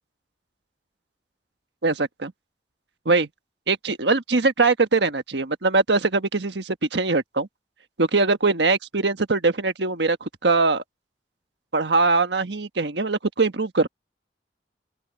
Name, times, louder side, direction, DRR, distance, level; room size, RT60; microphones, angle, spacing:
voice 1, 1.8-2.3 3.0-3.3 3.7-7.5 8.0-10.8 11.7-13.9, right 3 dB, 80° right, 1.4 m, -22 dB
open air
head